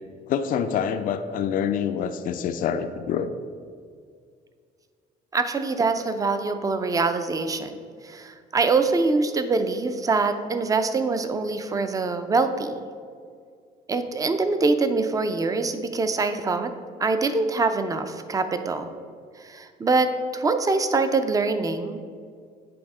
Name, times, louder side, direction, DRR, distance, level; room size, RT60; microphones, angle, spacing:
voice 1, 0.3-3.3, left 8 dB, 55° left, 9 dB, 0.4 m, -26 dB
voice 2, 5.3-7.7 8.0-12.8 13.9-16.7 17.0-18.9 19.4-22.0, right 3 dB, 20° right, 9 dB, 0.5 m, -24 dB
8.6 x 3.5 x 4.8 m, 2.2 s
cardioid pair, 110°, 17 cm